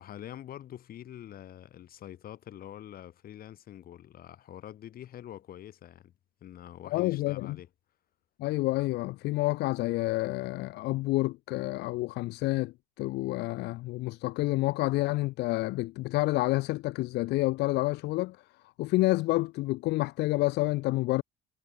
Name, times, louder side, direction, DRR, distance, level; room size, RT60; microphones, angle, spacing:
voice 1, 0.0-6.1 6.4-7.7, left 11 dB, 60° left, 7.9 m, -45 dB
voice 2, 6.9-7.6 8.4-18.4 18.8-21.2, left 19 dB, 85° left, 0.8 m, -29 dB
cardioid pair, 110°, 17 cm